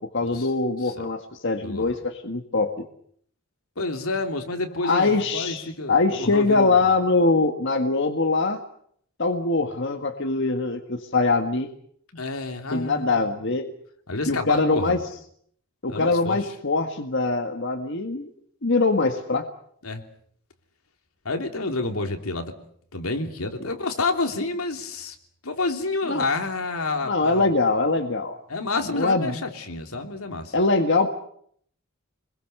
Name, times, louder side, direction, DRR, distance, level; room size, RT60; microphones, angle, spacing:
voice 1, 0.1-2.8 4.8-8.6 9.2-11.7 12.7-13.7 14.3-15.0 15.8-18.3 18.6-19.4 26.1-26.2 27.1-28.3 28.9-29.4 30.5-31.1, left 3 dB, 60° left, 5 dB, 1.7 m, -23 dB
voice 2, 1.6-2.0 3.8-6.9 12.2-13.3 14.1-15.0 15.9-16.4 19.8-20.0 21.2-22.5 22.9-25.1 25.4-27.5 28.5-30.5, left 3 dB, 90° left, 4 dB, 3.1 m, -29 dB
27.5 x 21.5 x 6.8 m, 0.64 s
head